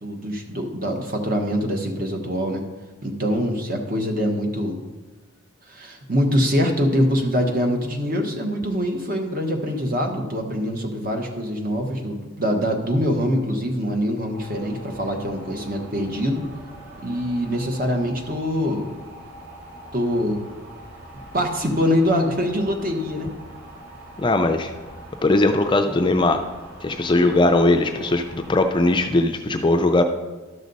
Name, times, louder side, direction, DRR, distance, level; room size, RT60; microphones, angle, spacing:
voice 1, 0.0-2.6 3.0-4.8 5.7-16.4 17.0-18.9 19.9-20.4 21.3-23.3, equal, 45° right, 3 dB, 1.2 m, -24 dB
sound 1, 14.3-29.1, right 1 dB, 70° right, 2.6 m, -43 dB
voice 2, 24.2-24.7 25.2-26.4 26.8-30.0, left 2 dB, 25° left, 6 dB, 0.4 m, -19 dB
12.0 x 6.3 x 4.0 m, 1.3 s
head